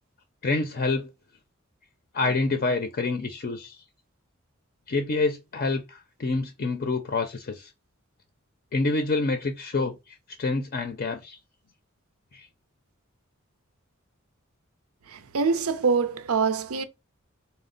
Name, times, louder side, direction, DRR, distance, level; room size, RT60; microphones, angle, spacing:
voice 1, 0.4-1.1 2.1-3.8 4.9-7.7 8.7-11.4 12.3-12.5, left 3 dB, 45° left, 0.5 m, -27 dB
voice 2, 15.1-16.8, right 5 dB, 85° right, 0.5 m, -25 dB
4.1 x 2.0 x 3.8 m
head